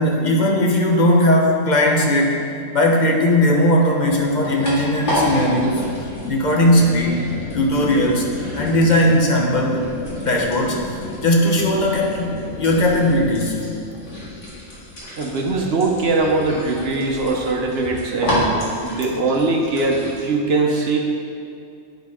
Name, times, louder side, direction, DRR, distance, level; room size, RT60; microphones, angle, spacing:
voice 1, 0.0-2.4 2.7-5.9 6.3-8.3 8.5-9.8 10.2-10.8 11.2-12.3 12.6-13.6, left 1 dB, 40° left, -1 dB, 0.9 m, -18 dB
sound 1, 4.3-20.2, left 1 dB, 60° left, 2.2 m, -30 dB
voice 2, 15.2-21.0, right 3 dB, 55° right, 0 dB, 1.0 m, -21 dB
9.2 x 4.3 x 4.8 m, 2.5 s
omnidirectional pair, 1.4 m